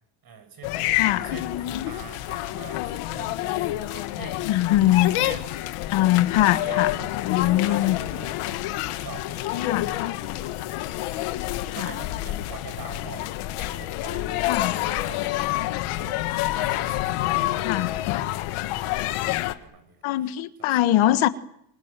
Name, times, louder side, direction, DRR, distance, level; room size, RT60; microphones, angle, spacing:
voice 1, 0.2-5.5 6.0-10.6 11.1-11.4 11.7-13.3 13.7-17.9 18.2-19.0 19.6-20.0 20.6-20.8, right 6 dB, 45° right, 7.9 m, -45 dB
sound 1, 0.6-19.5, left 15 dB, 85° left, 1.8 m, -28 dB
voice 2, 0.9-1.3 4.5-5.1 5.9-6.9 7.2-8.0 9.6-9.9 11.8-11.9 14.4-14.8 17.6-18.0 18.8-19.1 20.0-21.3, left 14 dB, 70° left, 1.5 m, -22 dB
26.5 x 25.0 x 7.5 m
cardioid pair, 130°, 50 cm